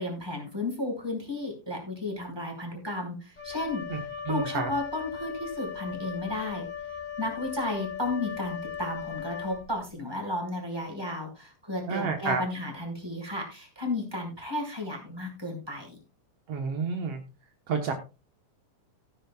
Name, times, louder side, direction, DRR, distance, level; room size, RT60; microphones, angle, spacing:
voice 1, 0.0-6.7 7.2-16.0, left 2 dB, 5° right, 1 dB, 4.5 m, -33 dB
Wind instrument woodwind instrument, 3.4-9.9, left 7 dB, 10° left, 3.0 m, -38 dB
voice 2, 4.2-4.7 11.8-12.4 16.5-17.2 17.7-17.9, right 5 dB, 75° right, 4 dB, 1.4 m, -29 dB
17.5 x 10.0 x 2.4 m, 0.30 s
omnidirectional pair, 4.5 m